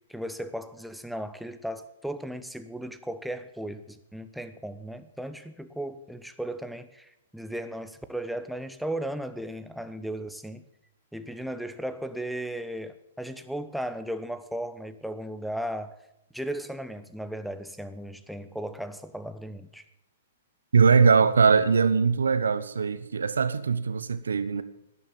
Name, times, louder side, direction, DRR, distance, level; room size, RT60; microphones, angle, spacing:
voice 1, 0.1-10.6 11.1-16.0 16.3-19.8, right 1 dB, ahead, 1.0 m, -36 dB
voice 2, 20.7-24.6, right 5 dB, 75° right, 1.0 m, -21 dB
12.5 x 9.9 x 8.9 m
figure-of-eight pair, 110°, 0 cm